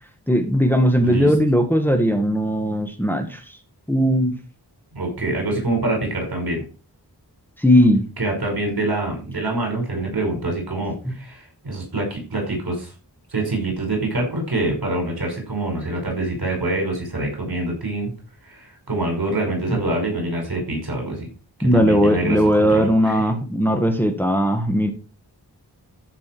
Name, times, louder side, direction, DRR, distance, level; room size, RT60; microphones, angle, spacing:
voice 1, 0.3-3.6 3.9-4.3 7.6-8.1 11.1-11.2 19.7-19.8 21.6-24.9, equal, 5° left, 5 dB, 1.8 m, -18 dB
voice 2, 4.9-6.6 8.2-12.9 13.3-18.1 18.4-21.3 21.6-23.2, right 2 dB, 70° right, 2 dB, 5.8 m, -25 dB
13.5 x 6.2 x 4.7 m, 0.34 s
wide cardioid pair, 75°, 39 cm